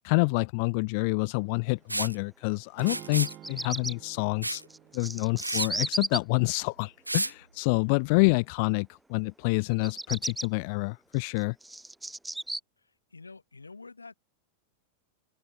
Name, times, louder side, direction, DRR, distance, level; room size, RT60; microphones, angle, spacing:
voice 1, 0.0-4.6 4.9-11.6, left 32 dB, 45° left, 0.6 m, -27 dB
Liquid, 1.9-2.1 2.8-3.4 4.4-4.6 5.0-5.1 5.4-5.7 7.1-7.3, right 2 dB, 85° right, 1.3 m, -31 dB
sound 1, 2.8-6.9, right 13 dB, 35° right, 4.5 m, -51 dB
Bird vocalization bird call bird song, 3.1-3.9 4.7-6.2 9.7-10.5 11.1-12.6, right 1 dB, 5° right, 2.1 m, -34 dB
voice 2, 13.1-14.1, left 3 dB, 80° left, 7.8 m, -47 dB
open air
figure-of-eight pair, 90°, 0 cm